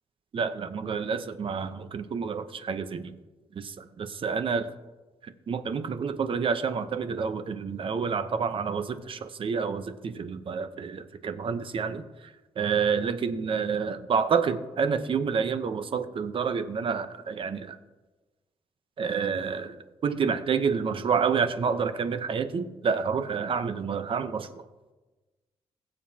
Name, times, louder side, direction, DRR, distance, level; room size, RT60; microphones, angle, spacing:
voice 1, 0.3-3.1 3.5-4.6 5.5-12.0 12.6-17.8 19.0-24.6, right 6 dB, 50° right, 10 dB, 0.9 m, -28 dB
21.5 x 7.5 x 2.9 m, 1.2 s
cardioid pair, 115°, 11 cm